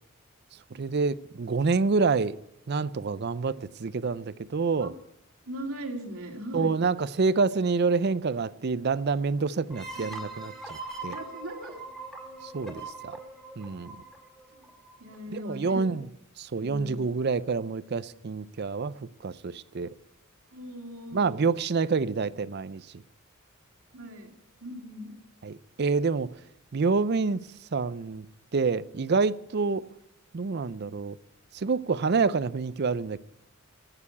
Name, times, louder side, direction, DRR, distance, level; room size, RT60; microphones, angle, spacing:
voice 1, 0.7-2.4 2.7-4.9 6.5-11.2 12.4-13.2 13.6-14.0 15.3-16.0 16.4-19.9 21.1-22.8 25.4-26.3 26.7-27.4 27.7-28.3 28.5-29.9 30.3-31.2 31.5-33.2, right 4 dB, 50° right, 0.5 m, -27 dB
voice 2, 5.5-6.7 10.0-10.2 11.1-11.8 14.5-14.7 15.0-15.8 20.5-21.4 23.9-24.3 24.6-25.1, equal, 85° right, 2.7 m, -39 dB
sound 1, 9.7-15.1, right 2 dB, ahead, 1.9 m, -41 dB
15.5 x 6.9 x 8.4 m
head